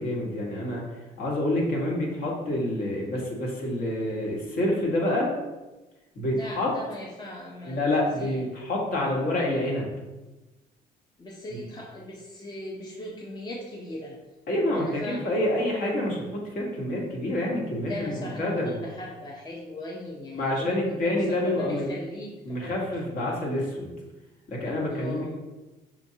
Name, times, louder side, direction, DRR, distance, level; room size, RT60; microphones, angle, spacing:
voice 1, 0.0-5.3 6.1-6.7 7.6-9.9 11.5-11.6 14.5-18.8 20.3-21.8 22.4-23.9 24.5-25.3, left 1 dB, 60° left, -2 dB, 1.4 m, -27 dB
voice 2, 6.3-7.9 8.2-8.4 11.2-14.2 14.7-15.3 17.9-22.7 24.9-25.4, left 1 dB, 25° left, -2 dB, 0.6 m, -39 dB
6.1 x 2.5 x 2.7 m, 1.1 s
cardioid pair, 110°, 17 cm